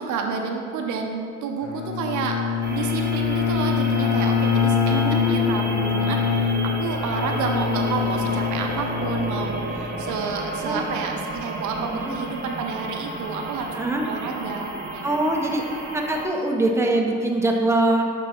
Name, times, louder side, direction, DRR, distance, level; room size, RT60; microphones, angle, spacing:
voice 1, 0.0-2.4 2.7-13.8 14.0-15.0, right 5 dB, 75° right, 3 dB, 0.7 m, -30 dB
Bowed string instrument, 1.6-10.1, left 6 dB, 70° left, 0.6 m, -24 dB
sound 1, 2.6-16.3, right 2 dB, 35° right, 0.9 m, -33 dB
voice 2, 4.9-6.0 10.6-10.9 11.8-12.2 13.7-14.0 15.0-15.6 15.9-18.0, right 1 dB, 10° right, 0 dB, 0.7 m, -24 dB
7.7 x 3.5 x 4.3 m, 2.3 s
cardioid pair, 90°, 30 cm